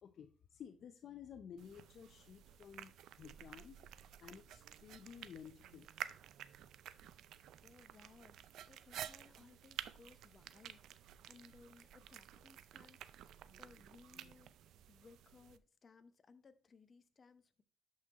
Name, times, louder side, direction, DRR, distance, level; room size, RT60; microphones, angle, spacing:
voice 1, 0.0-3.8 4.2-5.9, left 8 dB, 60° left, 8 dB, 0.6 m, -54 dB
sound 1, 1.6-15.6, right 11 dB, 80° right, 0.4 m, -52 dB
voice 2, 7.6-8.4 8.7-17.6, left 4 dB, 40° left, 11 dB, 0.9 m, -63 dB
12.5 x 5.7 x 3.0 m, 0.36 s
cardioid pair, 90°, 0 cm